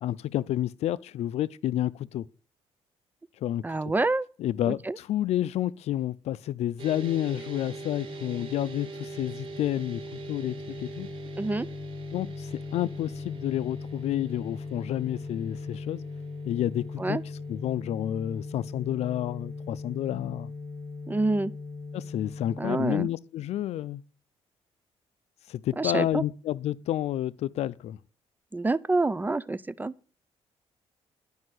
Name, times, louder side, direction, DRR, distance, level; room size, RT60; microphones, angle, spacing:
voice 1, 0.0-2.2 3.4-3.6 4.4-11.1 12.1-16.0 16.4-17.2 17.5-20.5 21.9-24.0 25.5-28.0, left 12 dB, 75° left, 0.5 m, -30 dB
voice 2, 3.6-4.3 4.7-5.0 11.4-11.7 17.0-17.2 21.1-21.5 22.6-23.1 25.8-26.2 28.5-29.9, right 2 dB, 15° right, 0.4 m, -27 dB
sound 1, 6.8-22.7, left 2 dB, 55° right, 3.7 m, -39 dB
11.5 x 5.5 x 7.7 m
cardioid pair, 100°, 11 cm